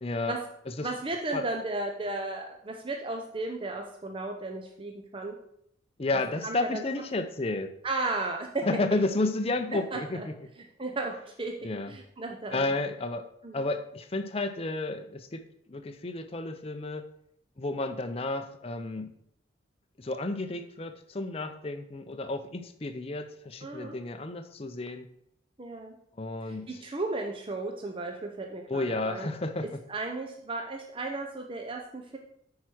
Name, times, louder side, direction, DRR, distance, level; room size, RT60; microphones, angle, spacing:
voice 1, 0.0-0.4 0.8-0.9 1.3-1.4 6.0-7.7 8.6-10.3 11.6-11.9 12.5-13.3 13.5-15.4 15.7-17.1 17.6-19.1 20.0-25.1 26.2-26.7 28.7-29.7, left 2 dB, 30° left, 7 dB, 0.6 m, -31 dB
voice 2, 0.8-5.4 6.4-6.8 7.8-9.0 9.7-10.3 10.8-12.7 13.4-13.7 23.6-24.0 25.6-25.9 26.4-29.3 29.6-32.2, right 2 dB, 25° right, 2 dB, 0.7 m, -35 dB
8.9 x 4.7 x 6.2 m, 0.74 s
head